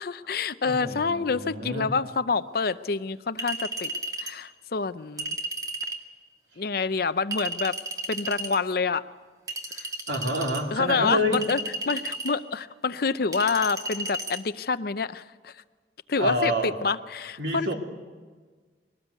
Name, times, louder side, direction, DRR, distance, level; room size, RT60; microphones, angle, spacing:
voice 1, 0.0-3.9 4.2-5.4 6.6-7.8 8.1-9.1 9.7-9.9 10.7-11.6 11.9-15.5 16.1-17.7, left 4 dB, 55° left, 13 dB, 0.6 m, -27 dB
voice 2, 0.6-1.9 10.1-11.4 16.2-16.8 17.4-17.7, equal, 85° right, 2 dB, 3.0 m, -28 dB
Chink clink, 3.4-4.4 5.2-6.0 7.3-8.6 9.5-10.6 11.3-12.4 13.3-14.4, right 2 dB, 20° right, 1.9 m, -33 dB
23.0 x 18.5 x 8.2 m, 1.5 s
head